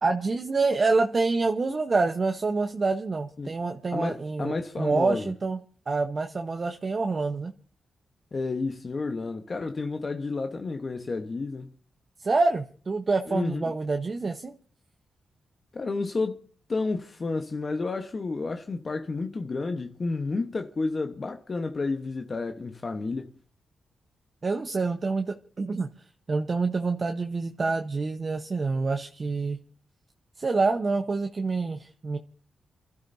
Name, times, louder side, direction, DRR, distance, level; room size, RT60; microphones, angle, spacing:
voice 1, 0.0-5.6 5.9-7.5 12.2-14.5 24.4-29.6 30.4-32.2, right 3 dB, 45° right, 1.0 m, -27 dB
voice 2, 3.9-5.3 8.3-11.7 13.3-13.6 15.7-23.3, left 3 dB, 45° left, 1.1 m, -31 dB
29.0 x 12.5 x 2.7 m
cardioid pair, 65°, 0 cm